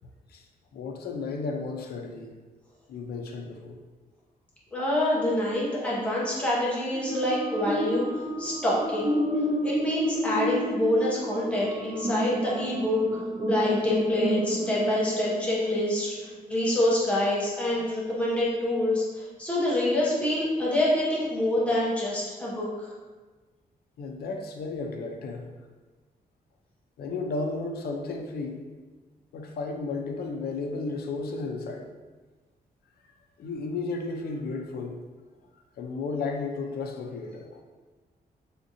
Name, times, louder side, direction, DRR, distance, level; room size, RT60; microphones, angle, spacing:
voice 1, 0.7-2.3 2.9-3.8 17.7-17.8 24.0-25.5 27.0-28.6 29.3-31.9 33.4-35.0 35.8-37.6, left 3 dB, 90° left, 3 dB, 0.4 m, -33 dB
voice 2, 4.7-9.1 9.6-13.2 13.5-22.9, left 1 dB, 10° left, -7 dB, 0.7 m, -26 dB
sound 1, 6.9-16.3, equal, 25° right, 0.3 m, -30 dB
3.4 x 2.6 x 2.8 m, 1.3 s
wide cardioid pair, 175°, 16 cm